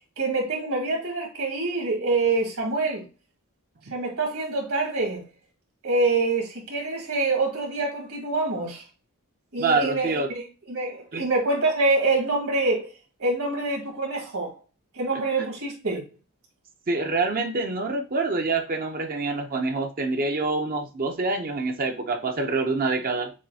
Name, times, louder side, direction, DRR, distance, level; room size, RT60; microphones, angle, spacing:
voice 1, 0.2-3.0 3.9-5.2 5.8-8.8 9.5-12.9 13.2-14.5 15.0-16.0, right 3 dB, 70° right, 2.2 m, -26 dB
voice 2, 9.6-10.3 11.1-11.3 16.9-23.3, right 3 dB, 40° right, 0.6 m, -26 dB
7.1 x 2.6 x 2.7 m
head